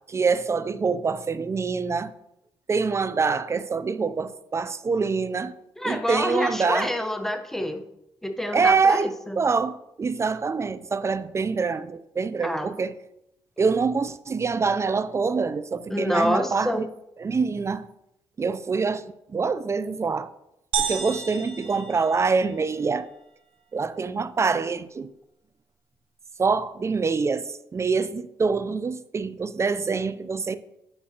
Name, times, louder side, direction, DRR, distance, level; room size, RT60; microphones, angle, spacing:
voice 1, 0.1-2.1 2.7-5.5 5.8-6.9 8.5-12.9 13.6-16.9 17.2-17.9 18.4-20.3 20.8-23.1 23.7-25.1 26.4-30.6, right 4 dB, 30° right, 0.3 m, -25 dB
voice 2, 5.8-7.8 8.2-9.4 12.4-12.7 15.9-16.8, equal, 5° left, 0.8 m, -27 dB
sound 1, 20.7-22.7, right 7 dB, 70° right, 0.7 m, -31 dB
8.6 x 5.3 x 2.8 m
supercardioid pair, 70°, 9 cm